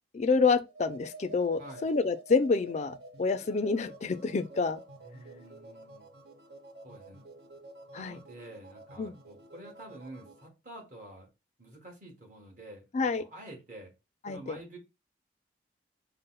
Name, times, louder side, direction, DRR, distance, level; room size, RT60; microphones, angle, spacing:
voice 1, 0.1-4.8 7.9-8.2 9.0-9.1 12.9-13.2 14.2-14.6, left 4 dB, 40° left, 0.3 m, -28 dB
sound 1, 0.6-10.5, right 2 dB, 65° right, 0.7 m, -50 dB
voice 2, 1.6-1.9 5.0-6.1 6.8-7.2 7.9-11.3 11.6-12.9 13.2-13.9 14.2-14.8, right 1 dB, 45° right, 1.6 m, -48 dB
5.3 x 2.1 x 3.9 m
head